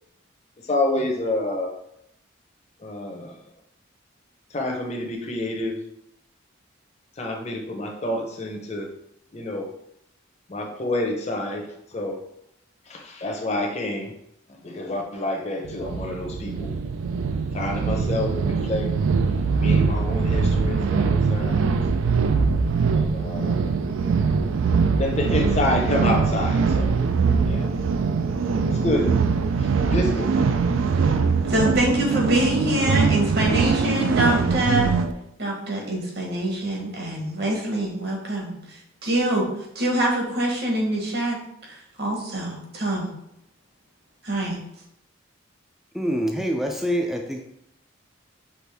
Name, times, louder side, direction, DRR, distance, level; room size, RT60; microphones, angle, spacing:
voice 1, 0.6-1.7 2.8-3.4 4.5-5.8 7.2-8.9 9.3-9.7 10.5-12.2 12.9-14.1 14.6-16.7 17.5-18.9 19.6-21.8 22.9-23.6 25.0-27.0 27.4-27.7 28.7-29.1 29.6-30.3, left 1 dB, 35° left, 2 dB, 0.7 m, -28 dB
sound 1, 15.6-35.1, right 5 dB, 80° right, 0.4 m, -22 dB
voice 2, 31.4-34.9 35.4-39.4 39.7-41.4 41.6-43.1 44.2-44.6, right 1 dB, 55° right, -1 dB, 1.2 m, -25 dB
voice 3, 45.9-47.4, equal, ahead, 1 dB, 0.3 m, -25 dB
5.8 x 2.6 x 3.4 m, 0.77 s
head